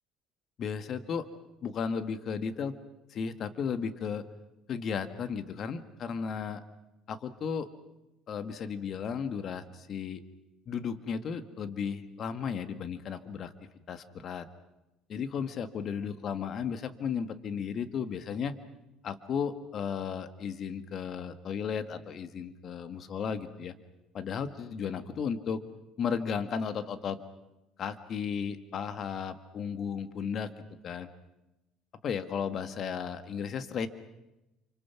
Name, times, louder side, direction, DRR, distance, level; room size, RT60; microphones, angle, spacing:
voice 1, 0.6-1.3 1.6-2.7 3.1-4.2 4.7-6.6 7.1-7.7 8.3-10.2 10.7-13.5 13.9-14.5 15.1-18.6 19.0-23.7 24.1-25.6 26.0-27.2 27.8-30.5 30.8-31.1 32.0-33.9, left 6 dB, 50° left, 11 dB, 1.8 m, -34 dB
28.0 x 25.5 x 6.0 m, 0.96 s
supercardioid pair, 85°, 0 cm